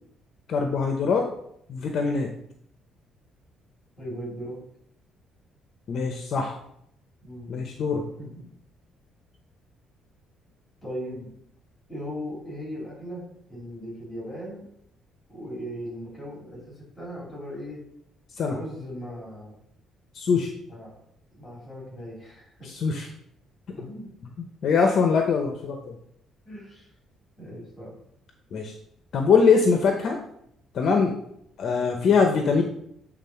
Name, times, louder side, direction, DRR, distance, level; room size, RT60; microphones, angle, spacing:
voice 1, 0.5-1.3 1.7-2.3 5.9-6.6 7.5-8.1 18.3-18.6 20.1-20.5 22.6-23.1 24.6-26.0 28.5-28.7 29.1-30.2 30.7-31.2 31.6-32.6, left 5 dB, 45° left, 3 dB, 0.7 m, -22 dB
voice 2, 4.0-4.6 7.2-7.7 8.2-8.5 10.8-11.3 11.9-14.6 15.3-17.8 18.5-19.5 20.7-21.0 21.3-22.7 23.7-24.1 26.4-26.9 27.4-27.9, equal, 15° left, -3 dB, 3.4 m, -38 dB
8.2 x 3.7 x 5.7 m, 0.73 s
cardioid pair, 170°, 0 cm